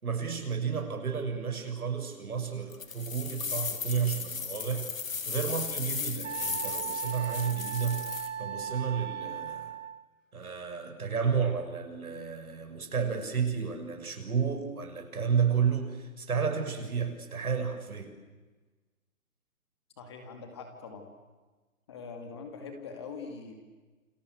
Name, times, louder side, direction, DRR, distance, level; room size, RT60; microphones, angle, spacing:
voice 1, 0.0-4.9 5.3-9.7 10.3-18.1, right 6 dB, 80° right, 5 dB, 6.5 m, -31 dB
sound 1, 2.7-8.3, left 6 dB, 65° left, 3.2 m, -36 dB
Wind instrument woodwind instrument, 6.2-10.0, right 8 dB, 60° right, 1.1 m, -37 dB
voice 2, 20.0-21.1 21.9-23.5, left 5 dB, 20° left, 5 dB, 2.4 m, -43 dB
29.0 x 25.5 x 8.0 m, 1.3 s
hypercardioid pair, 180°, 43 cm